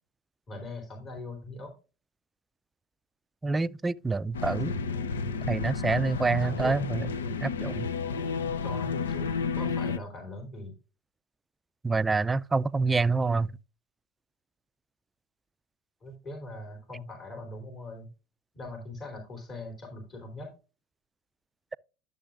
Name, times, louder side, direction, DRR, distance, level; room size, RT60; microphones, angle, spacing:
voice 1, 0.5-1.7 6.4-6.8 8.6-10.7 16.0-18.1 18.5-20.5, left 2 dB, 40° left, 3.4 m, -41 dB
voice 2, 3.4-4.8 5.5-7.1 7.4-7.9 11.8-13.5, right 3 dB, 20° right, 0.4 m, -27 dB
sound 1, 4.3-10.0, left 5 dB, 90° left, 0.6 m, -31 dB
11.5 x 6.8 x 2.5 m
hypercardioid pair, 80°, 0 cm